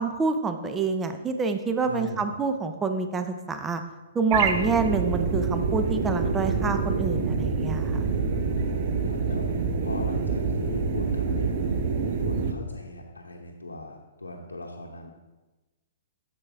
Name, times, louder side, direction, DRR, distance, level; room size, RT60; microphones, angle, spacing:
voice 1, 0.0-3.8 4.1-8.0, right 4 dB, 15° right, 7 dB, 0.7 m, -27 dB
voice 2, 1.8-2.3 4.5-4.6 8.2-9.6 9.8-11.7 12.2-15.1, left 2 dB, 85° left, -2 dB, 0.8 m, -39 dB
sound 1, 4.3-12.5, right 5 dB, 45° right, 0.8 m, -26 dB
8.0 x 6.9 x 3.6 m, 1.1 s
figure-of-eight pair, 120°, 0 cm